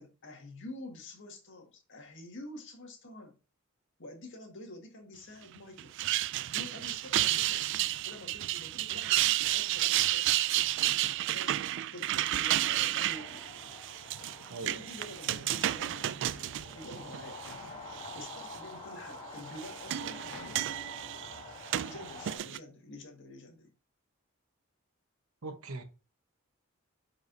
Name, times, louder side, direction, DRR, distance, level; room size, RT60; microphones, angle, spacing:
voice 1, 0.0-3.4 4.0-5.9 6.5-10.3 10.7-10.8 11.3-13.4 14.6-17.4 18.1-20.4 21.8-23.7, left 1 dB, 60° left, 1.8 m, -48 dB
sound 1, 5.8-17.5 18.0-18.6 19.4-22.6, right 14 dB, 60° right, 0.3 m, -31 dB
sound 2, 13.0-22.4, left 2 dB, 30° left, 3.9 m, -48 dB
voice 2, 14.5-14.8 25.4-25.8, right 3 dB, 90° right, 1.1 m, -40 dB
sound 3, 17.4-19.4 20.3-22.2, left 4 dB, 80° left, 0.7 m, -54 dB
9.3 x 4.8 x 2.7 m
head